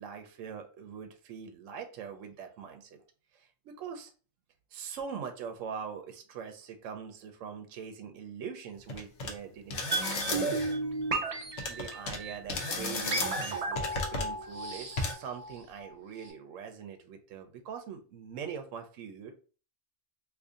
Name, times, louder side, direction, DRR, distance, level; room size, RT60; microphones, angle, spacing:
voice 1, 0.0-3.0 3.3-4.1 4.7-10.5 11.6-19.3, right 7 dB, 80° right, 6 dB, 0.9 m, -43 dB
sound 1, 8.9-9.3 9.7-10.8 11.6-12.2 12.5-14.3 15.0-15.1, left 3 dB, 65° left, 1.0 m, -34 dB
sound 2, 9.9-15.9 16.2-16.3, right 3 dB, 50° right, 0.4 m, -34 dB
2.7 x 2.6 x 3.6 m, 0.37 s
omnidirectional pair, 1.3 m